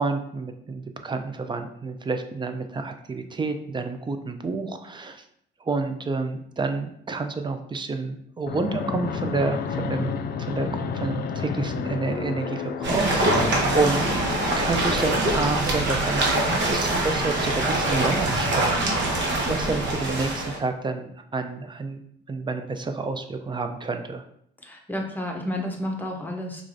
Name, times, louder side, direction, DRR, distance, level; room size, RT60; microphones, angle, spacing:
voice 1, 0.0-5.2 5.6-14.2 14.6-16.4 16.7-22.0 22.3-24.2, right 3 dB, 25° right, 7 dB, 0.4 m, -29 dB
Fixed-wing aircraft airplane, 8.5-15.5, left 6 dB, 50° left, 0.4 m, -31 dB
sound 1, 12.8-20.6, right 1 dB, 65° right, 1.0 m, -24 dB
voice 2, 24.6-26.6, left 1 dB, 10° left, 1 dB, 0.8 m, -31 dB
4.7 x 2.5 x 2.6 m, 0.68 s
cardioid pair, 90°, 20 cm